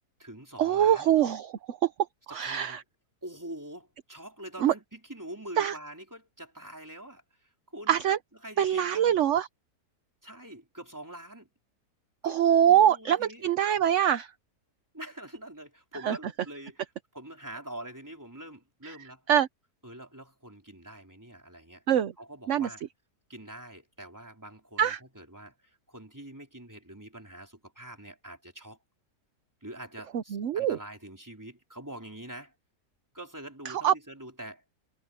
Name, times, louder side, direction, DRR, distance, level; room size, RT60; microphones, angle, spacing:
voice 1, 0.0-1.1 2.3-2.8 3.2-8.0 8.4-9.2 10.2-11.5 12.2-13.4 14.9-16.9 17.1-19.3 19.8-21.8 22.2-22.8 23.3-28.8 29.6-32.5 33.1-34.6, right 1 dB, 10° right, 3.8 m, -45 dB
voice 2, 0.6-1.9 2.3-2.8 4.6-4.7 5.6-5.7 7.9-8.2 8.6-9.5 12.2-14.3 16.0-16.2 19.3-19.5 21.9-22.1 22.5-22.7 24.8-25.0 30.1-30.8 33.7-33.9, right 10 dB, 55° right, 0.9 m, -24 dB
omnidirectional pair, 1.7 m